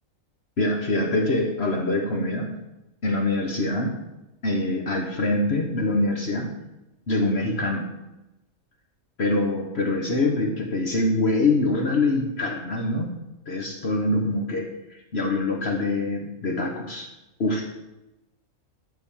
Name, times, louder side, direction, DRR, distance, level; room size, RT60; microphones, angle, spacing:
voice 1, 0.6-2.5 3.0-3.9 4.4-6.5 7.1-7.9 9.2-13.2 13.5-14.7 15.1-17.1 17.4-17.6, left 2 dB, 50° left, 2 dB, 1.5 m, -24 dB
13.0 x 4.5 x 7.2 m, 0.95 s
omnidirectional pair, 1.5 m